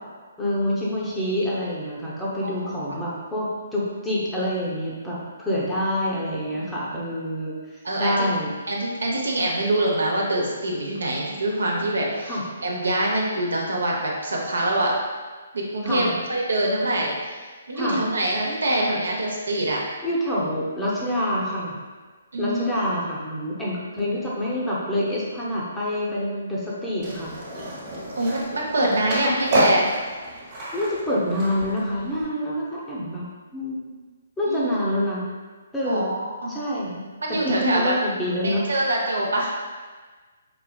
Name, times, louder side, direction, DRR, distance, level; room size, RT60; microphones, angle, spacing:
voice 1, 0.4-8.5 12.2-12.4 15.8-16.2 17.7-18.0 20.0-21.8 22.4-27.3 28.8-29.0 29.2-29.3 30.7-33.3 33.5-34.0 34.4-35.2 35.7-36.1 36.5-37.0 37.3-38.6, left 1 dB, 5° left, -7 dB, 0.6 m, -26 dB
voice 2, 7.8-8.3 8.7-14.9 15.5-17.2 17.7-19.8 22.3-22.8 28.2-29.9 34.5-34.8 35.8-36.5 37.2-37.9 38.4-39.5, right 1 dB, 90° right, -2 dB, 0.7 m, -24 dB
Skateboard, 27.0-32.2, right 1 dB, 30° right, 0.9 m, -29 dB
4.1 x 2.3 x 2.3 m, 1.4 s
hypercardioid pair, 150°, 0 cm